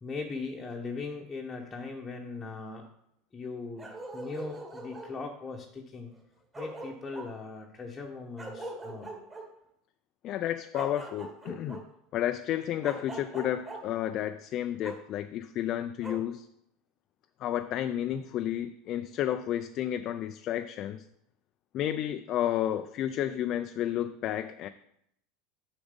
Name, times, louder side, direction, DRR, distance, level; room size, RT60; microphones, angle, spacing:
voice 1, 0.0-2.9 3.3-6.1 6.5-9.1, left 4 dB, 15° left, -1 dB, 0.9 m, -39 dB
Bark, 3.8-5.1 6.2-6.3 6.5-7.3 8.4-9.4 10.7-11.8 12.8-13.8 14.8-15.0 16.0-16.2, right 2 dB, 20° right, 1.9 m, -41 dB
voice 2, 10.2-11.8 12.1-16.5 17.4-21.0 21.7-24.7, left 11 dB, 45° left, 8 dB, 0.4 m, -31 dB
7.0 x 5.1 x 5.2 m, 0.75 s
supercardioid pair, 135°, 0 cm